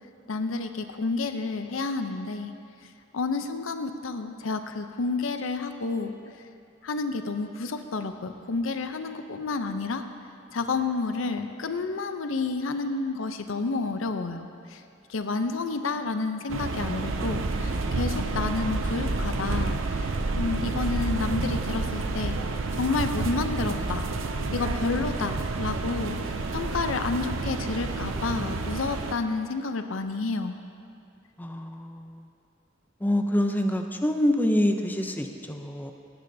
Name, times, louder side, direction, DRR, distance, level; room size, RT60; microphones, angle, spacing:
voice 1, 0.3-2.5 3.1-6.1 6.8-10.0 10.5-14.8 15.1-20.1 20.3-22.4 22.8-24.1 24.5-26.2 26.5-30.6, left 3 dB, 85° left, 8 dB, 0.6 m, -30 dB
sound 1, 16.5-29.1, right 3 dB, 75° right, 0.6 m, -29 dB
voice 2, 31.4-32.2 33.0-35.9, left 1 dB, 10° left, 4 dB, 0.5 m, -26 dB
17.0 x 9.8 x 2.7 m, 2.5 s
head